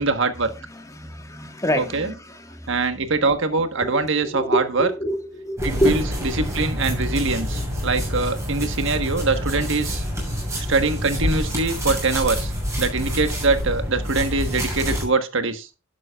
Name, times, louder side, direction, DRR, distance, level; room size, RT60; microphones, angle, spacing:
voice 1, 0.0-0.5 1.8-2.1 2.7-4.9 5.6-6.0 6.3-10.0 10.7-12.5 12.8-15.7, right 3 dB, 60° right, 8 dB, 1.4 m, -23 dB
voice 2, 0.7-2.7 3.8-6.0, equal, 15° left, 5 dB, 1.8 m, -26 dB
sound 1, 5.6-15.1, equal, 15° right, 6.7 m, -27 dB
12.0 x 11.5 x 2.4 m, 0.29 s
head